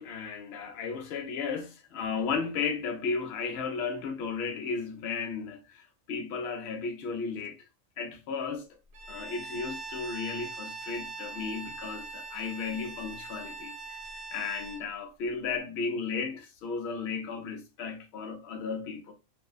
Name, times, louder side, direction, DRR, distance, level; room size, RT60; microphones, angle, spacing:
voice 1, 0.0-7.6 8.0-8.7 9.1-19.1, left 5 dB, 60° left, 0.8 m, -34 dB
Bowed string instrument, 8.9-14.9, right 3 dB, 75° right, 0.9 m, -41 dB
2.6 x 2.1 x 2.2 m
omnidirectional pair, 1.4 m